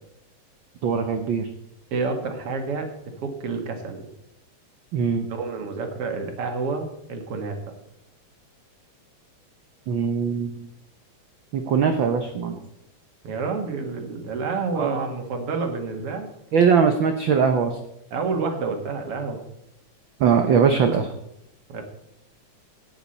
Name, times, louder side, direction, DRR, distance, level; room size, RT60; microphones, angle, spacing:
voice 1, 0.8-1.5 4.9-5.3 9.9-10.5 11.5-12.6 14.8-15.0 16.5-17.8 20.2-21.1, right 6 dB, 85° right, 6 dB, 1.0 m, -21 dB
voice 2, 1.9-2.9 3.2-4.1 5.3-7.8 13.2-16.3 18.1-19.4 21.7-21.8, right 4 dB, 55° right, 4 dB, 2.5 m, -29 dB
14.5 x 9.5 x 4.3 m, 0.84 s
omnidirectional pair, 3.4 m